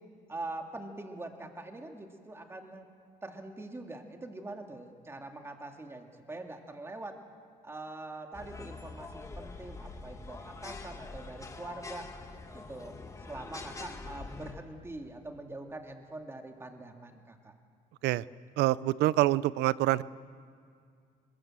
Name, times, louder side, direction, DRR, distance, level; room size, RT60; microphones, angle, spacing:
voice 1, 0.3-2.9 3.2-7.2 7.6-12.1 12.5-13.0 13.3-17.5, right 2 dB, 15° right, 4 dB, 2.2 m, -43 dB
sound 1, 8.3-14.5, left 3 dB, 20° left, 2.1 m, -44 dB
voice 2, 18.6-20.0, right 17 dB, 80° right, 19 dB, 0.5 m, -26 dB
22.0 x 21.0 x 7.6 m, 2.2 s
cardioid pair, 110°, 17 cm